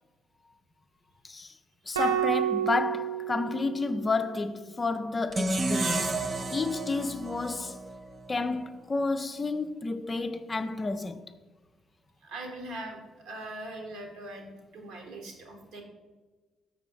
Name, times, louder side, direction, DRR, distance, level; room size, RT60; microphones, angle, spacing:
voice 1, 1.2-1.6 1.9-7.8 8.3-11.3, left 3 dB, 30° left, 0.4 m, -31 dB
sound 1, 1.9-4.3, right 10 dB, 80° right, 0.4 m, -30 dB
sound 2, 5.3-8.5, right 2 dB, 35° right, 0.7 m, -31 dB
voice 2, 12.2-13.0 13.2-15.8, right 1 dB, 60° right, 1.3 m, -41 dB
6.4 x 6.1 x 4.4 m
figure-of-eight pair, 45°, 0 cm